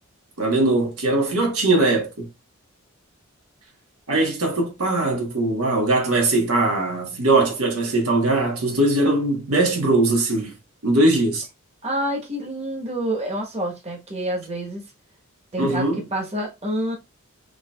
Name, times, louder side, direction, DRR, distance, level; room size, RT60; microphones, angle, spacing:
voice 1, 0.4-2.3 4.1-10.5 10.8-11.5 15.6-16.0, right 2 dB, 90° right, 1.3 m, -20 dB
voice 2, 11.8-14.8 15.5-17.0, right 1 dB, 30° right, 1.2 m, -28 dB
4.8 x 2.9 x 2.3 m
head